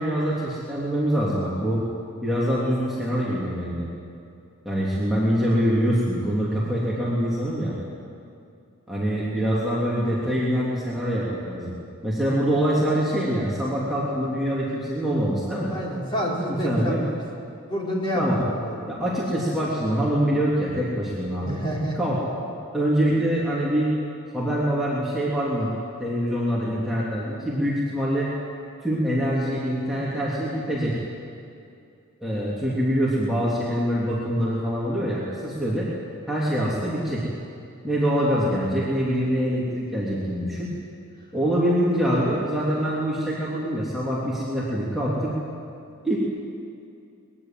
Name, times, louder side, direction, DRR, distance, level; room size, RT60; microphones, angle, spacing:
voice 1, 0.0-1.8 2.2-3.9 4.6-7.7 8.9-11.7 12.0-15.7 16.5-17.0 18.1-18.4 18.9-21.6 22.0-22.2 22.7-23.9 24.3-25.7 26.0-28.3 28.8-31.0 32.2-35.9 36.3-37.3 37.8-40.7 41.3-45.3 46.0-46.2, equal, ahead, -8 dB, 3.2 m, -24 dB
voice 2, 15.7-17.2 17.7-18.9 21.5-22.0, equal, 20° left, -4 dB, 4.6 m, -28 dB
23.0 x 21.0 x 7.8 m, 2.5 s
head